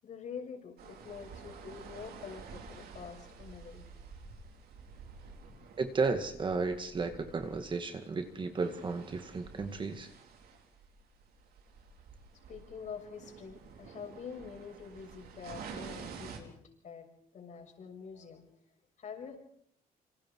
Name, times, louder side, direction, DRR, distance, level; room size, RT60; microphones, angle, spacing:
voice 1, 0.0-3.8 12.5-16.6 16.8-18.4 19.0-19.4, left 6 dB, 50° left, 2 dB, 6.8 m, -46 dB
sound 1, 0.8-16.4, right 5 dB, 70° right, 4.5 m, -50 dB
voice 2, 5.8-10.1, right 4 dB, 30° right, 7 dB, 2.0 m, -33 dB
27.5 x 26.0 x 4.8 m, 0.66 s
cardioid pair, 140°, 16 cm